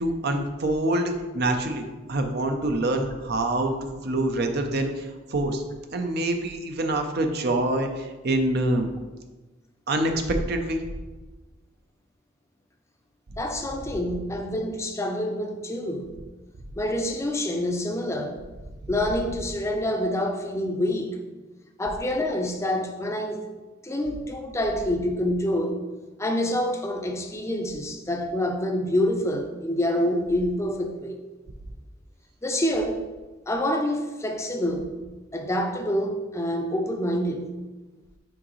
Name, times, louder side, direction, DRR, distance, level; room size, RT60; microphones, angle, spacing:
voice 1, 0.0-3.7 4.0-5.6 5.9-8.9 9.9-10.8, right 1 dB, 55° right, 5 dB, 0.6 m, -26 dB
voice 2, 13.4-16.1 16.8-18.4 18.9-21.2 21.8-23.4 23.8-25.8 26.2-31.2 32.4-33.0 33.5-34.9 35.3-37.5, left 1 dB, 15° left, 4 dB, 0.5 m, -27 dB
6.2 x 4.9 x 3.1 m, 1.2 s
head